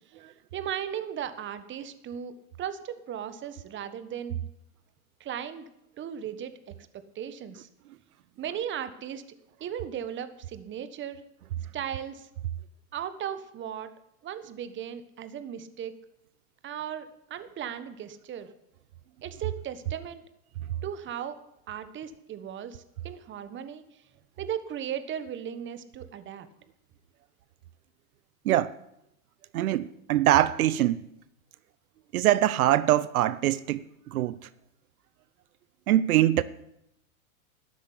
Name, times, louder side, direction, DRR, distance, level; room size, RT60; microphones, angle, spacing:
voice 1, 0.5-2.3 2.6-4.4 5.2-5.7 6.0-6.5 6.9-7.7 8.4-9.2 9.6-11.2 11.7-12.3 12.9-13.9 14.2-15.9 16.6-18.5 19.2-20.2 20.8-21.4 21.7-23.8 24.4-26.5, right 9 dB, 25° right, 1.3 m, -36 dB
voice 2, 29.5-31.0 32.1-33.8 34.1-34.4 35.9-36.4, right 13 dB, 80° right, 0.7 m, -23 dB
12.5 x 8.4 x 9.8 m
hypercardioid pair, 120°, 42 cm